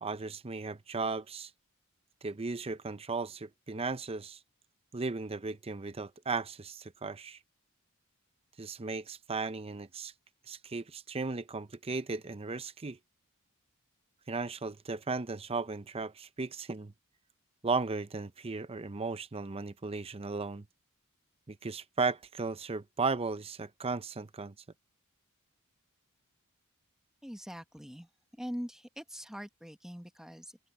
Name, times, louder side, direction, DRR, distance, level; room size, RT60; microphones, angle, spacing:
voice 1, 0.0-1.5 2.2-4.4 4.9-7.4 8.6-10.1 10.5-13.0 14.3-16.9 17.6-20.6 21.5-24.5, right 4 dB, 25° right, 0.6 m, -36 dB
voice 2, 27.2-30.6, equal, ahead, 1.2 m, -43 dB
head